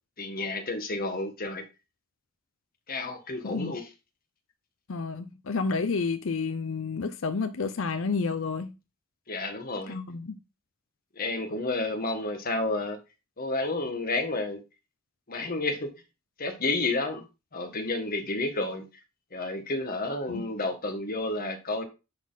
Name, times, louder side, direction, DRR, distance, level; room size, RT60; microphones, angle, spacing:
voice 1, 0.2-1.6 2.9-3.8 9.3-10.0 11.2-13.0 13.4-14.6 15.3-15.9 16.4-17.2 17.5-18.9 19.3-21.8, left 2 dB, 45° left, 1.6 m, -30 dB
voice 2, 3.4-3.8 4.9-8.7 9.9-10.4 20.3-20.5, left 4 dB, 75° left, 0.7 m, -30 dB
10.5 x 4.3 x 4.0 m
head